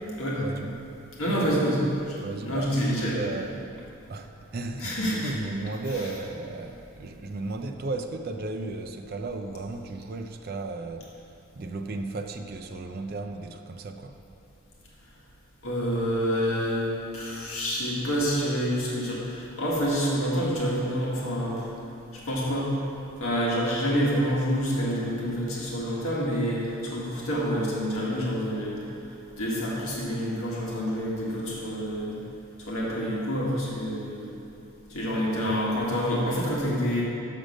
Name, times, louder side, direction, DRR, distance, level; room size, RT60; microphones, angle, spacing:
voice 1, 0.4-0.8 1.3-1.8 2.2-3.7 4.1-11.1 11.6-14.2 35.2-35.6, right 2 dB, 45° right, 4 dB, 0.4 m, -35 dB
voice 2, 1.2-2.2 2.5-3.2 4.8-5.3 5.9-6.1 15.6-16.9 17.1-21.7 22.1-22.7 23.2-28.8 29.1-32.2 32.6-34.3 34.9-37.0, equal, 70° left, -5 dB, 1.7 m, -27 dB
6.7 x 6.3 x 6.2 m, 2.7 s
head